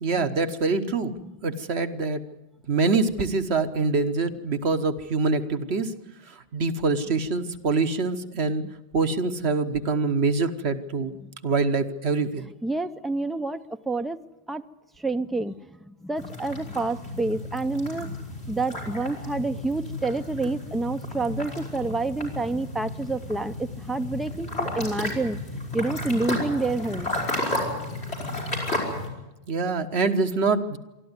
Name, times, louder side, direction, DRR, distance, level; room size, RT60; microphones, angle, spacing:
voice 1, 0.0-1.1 1.4-2.2 2.7-5.9 6.5-8.6 8.9-11.1 11.4-12.5 29.5-30.8, right 4 dB, 75° right, 8 dB, 1.4 m, -25 dB
voice 2, 12.4-13.6 13.9-14.2 14.5-14.6 15.0-18.2 18.5-25.4 25.7-27.1, right 2 dB, ahead, 9 dB, 0.4 m, -28 dB
sound 1, 16.2-29.1, left 1 dB, 80° left, 5.2 m, -33 dB
24.0 x 13.5 x 9.6 m, 1.0 s
omnidirectional pair, 1.1 m